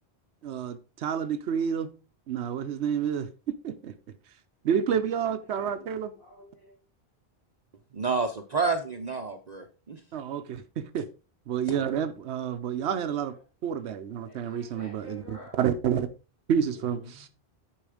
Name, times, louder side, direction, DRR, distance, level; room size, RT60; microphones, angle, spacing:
voice 1, 0.4-1.9 2.3-3.9 4.6-6.1 10.1-11.1 11.5-13.4 13.6-16.1 16.5-17.3, right 8 dB, 85° right, 1.0 m, -29 dB
voice 2, 5.2-6.8 13.2-13.4 14.2-15.6 16.7-17.3, left 1 dB, 50° left, 4.2 m, -50 dB
voice 3, 7.9-10.0, right 4 dB, 45° right, 0.8 m, -29 dB
10.0 x 4.9 x 4.9 m
omnidirectional pair, 1.1 m